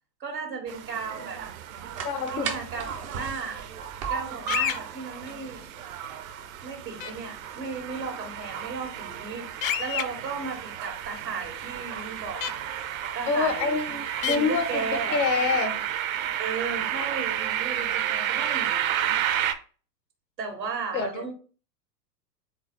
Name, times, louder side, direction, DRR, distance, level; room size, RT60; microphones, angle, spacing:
voice 1, 0.2-1.5 2.3-3.6 4.1-5.7 6.6-9.5 9.8-12.6 13.2-13.8 14.3-15.2 16.4-19.2 20.4-21.3, right 4 dB, 85° right, 3 dB, 1.6 m, -35 dB
sound 1, 0.7-19.5, right 10 dB, 55° right, 0.7 m, -32 dB
sound 2, 1.3-13.0, right 6 dB, 25° right, 0.3 m, -42 dB
voice 2, 2.0-2.5 13.3-15.8 20.9-21.3, left 4 dB, 85° left, 9 dB, 1.0 m, -27 dB
sound 3, 4.5-4.8 7.0-7.1 9.6-10.0 12.4-12.5 14.2-14.4, left 11 dB, 55° left, 0.5 m, -27 dB
4.5 x 3.5 x 3.1 m, 0.38 s
figure-of-eight pair, 100°, 50 cm